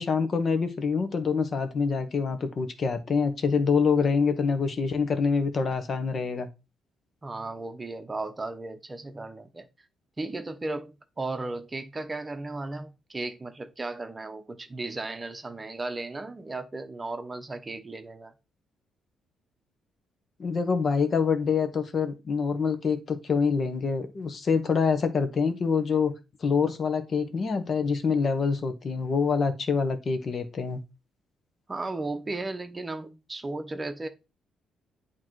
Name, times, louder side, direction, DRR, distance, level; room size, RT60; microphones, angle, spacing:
voice 1, 0.0-6.5 20.4-26.1 26.4-30.8, left 5 dB, 45° left, 1.1 m, -26 dB
voice 2, 7.2-9.7 10.2-18.3 31.7-34.1, right 2 dB, 25° right, 0.8 m, -35 dB
8.5 x 3.0 x 4.6 m
cardioid pair, 90°, 0 cm